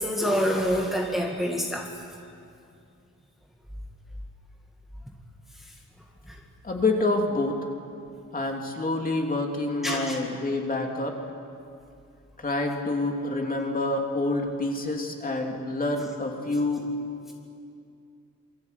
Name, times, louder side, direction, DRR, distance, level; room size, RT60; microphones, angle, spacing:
voice 1, 0.0-1.9 6.3-6.4 9.8-10.2, equal, ahead, 0 dB, 1.9 m, -26 dB
voice 2, 6.6-7.6 8.3-11.2 12.4-16.9, left 2 dB, 25° left, 1 dB, 2.9 m, -27 dB
27.5 x 24.5 x 8.3 m, 2.5 s
wide cardioid pair, 175°, 32 cm